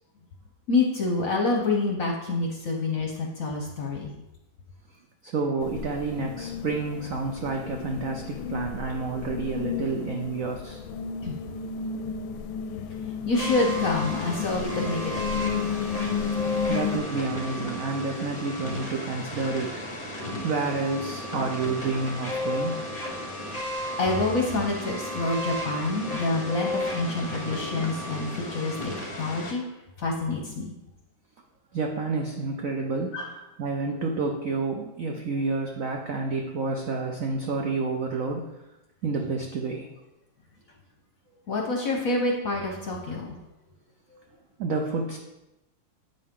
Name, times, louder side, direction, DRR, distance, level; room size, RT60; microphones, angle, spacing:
voice 1, 0.7-4.1 11.2-11.4 13.3-15.8 20.2-20.3 23.6-28.7 29.2-29.6 30.0-30.7 33.1-33.3 41.5-43.4, left 3 dB, 55° left, 0 dB, 1.0 m, -27 dB
voice 2, 5.2-10.8 16.2-16.4 16.7-22.8 31.7-38.4 39.0-39.9 44.6-45.2, right 4 dB, 75° right, 2 dB, 0.7 m, -29 dB
sound 1, 5.6-17.0, left 7 dB, 75° left, 1.2 m, -33 dB
sound 2, 13.3-29.5, left 1 dB, 30° left, 0.8 m, -33 dB
8.6 x 5.3 x 3.7 m, 0.95 s
omnidirectional pair, 2.3 m